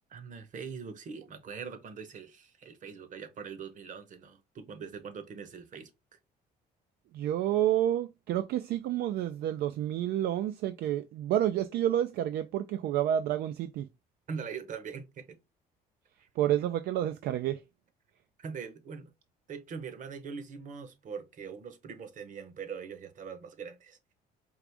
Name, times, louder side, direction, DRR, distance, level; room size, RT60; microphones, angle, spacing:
voice 1, 0.1-5.9 14.3-15.4 16.2-16.3 18.4-19.1 19.5-24.1, right 6 dB, 50° right, 0.9 m, -42 dB
voice 2, 7.1-13.9 16.4-17.6, right 11 dB, 70° right, 0.4 m, -29 dB
4.7 x 2.5 x 3.4 m
cardioid pair, 110°, 17 cm